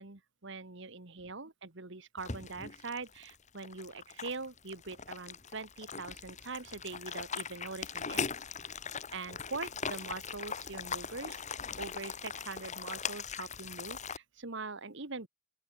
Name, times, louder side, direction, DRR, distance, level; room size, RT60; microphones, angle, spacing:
voice 1, 0.0-8.2 9.1-11.4 11.7-15.3, right 3 dB, 60° right, 1.7 m, -43 dB
sound 1, 2.2-14.2, left 6 dB, 35° left, 1.9 m, -40 dB
open air
head